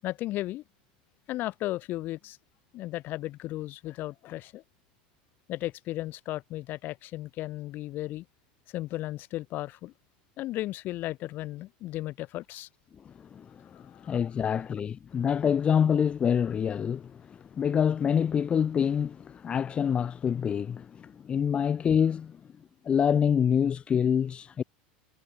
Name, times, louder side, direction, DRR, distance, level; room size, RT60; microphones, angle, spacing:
voice 1, 0.0-0.6 1.3-2.4 2.7-4.6 5.5-8.2 8.7-9.9 10.4-12.7 13.7-14.1 14.4-14.6, left 16 dB, 45° left, 6.7 m, -35 dB
voice 2, 13.1-13.5 14.0-22.4 22.9-24.6, left 8 dB, 25° left, 0.8 m, -26 dB
supercardioid pair, 140°, 5 cm